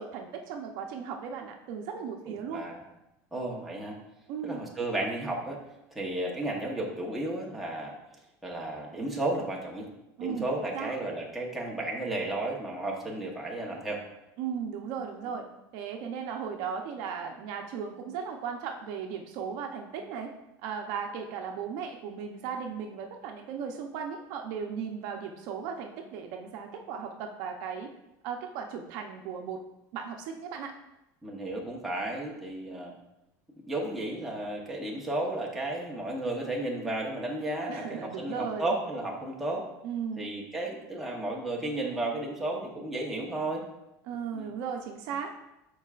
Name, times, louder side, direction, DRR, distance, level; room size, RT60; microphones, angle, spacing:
voice 1, 0.0-2.7 4.3-4.6 10.2-10.9 14.4-15.4 15.7-20.3 20.6-27.9 28.2-29.6 29.9-30.7 37.7-38.7 39.8-40.3 44.0-45.4, right 6 dB, 55° right, 3 dB, 0.7 m, -36 dB
voice 2, 2.2-2.8 3.3-4.0 4.4-5.6 5.9-7.9 8.4-9.9 10.2-14.0 31.2-32.9 33.7-39.6 40.2-43.6 44.3-44.5, right 2 dB, ahead, -3 dB, 1.0 m, -33 dB
12.5 x 4.7 x 2.5 m, 0.90 s
cardioid pair, 175°, 8 cm